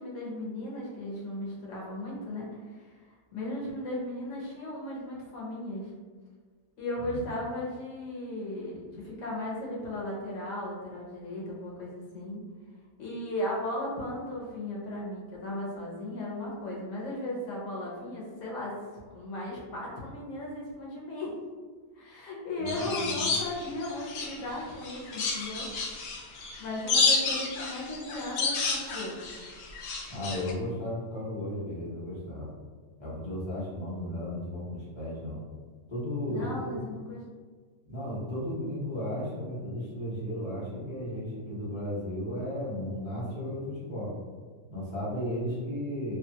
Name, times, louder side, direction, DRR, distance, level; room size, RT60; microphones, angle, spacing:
voice 1, 0.0-3.0 3.3-5.9 6.8-12.4 13.0-18.8 19.1-21.3 21.9-25.7 26.6-29.2 36.3-37.2, left 1 dB, 60° left, -4 dB, 1.1 m, -36 dB
voice 2, 22.6-23.3 30.1-32.5 33.0-35.4 35.9-36.8 37.9-44.1 44.7-46.2, left 1 dB, 25° left, -9 dB, 0.7 m, -34 dB
sound 1, 22.7-24.5 24.8-30.5, left 4 dB, 80° left, 1.1 m, -30 dB
2.7 x 2.3 x 2.7 m, 1.5 s
omnidirectional pair, 1.6 m